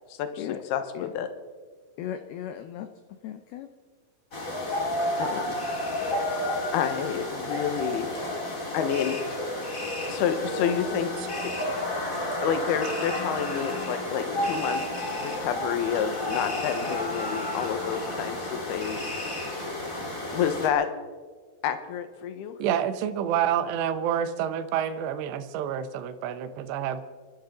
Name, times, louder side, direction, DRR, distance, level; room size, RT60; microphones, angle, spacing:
voice 1, 0.1-0.4 0.7-1.3 5.2-5.6 6.7-8.1 8.7-9.2 10.1-11.1 11.4-11.5 12.4-19.1 20.3-20.9 21.6-22.6, left 8 dB, 70° left, 9 dB, 2.7 m, -29 dB
voice 2, 2.0-3.7, left 10 dB, 85° left, 8 dB, 2.2 m, -37 dB
sound 1, 4.3-20.7, left 1 dB, 30° left, 1.4 m, -31 dB
voice 3, 22.6-27.0, right 9 dB, 75° right, 9 dB, 2.9 m, -28 dB
28.0 x 13.5 x 3.9 m, 1.5 s
omnidirectional pair, 5.5 m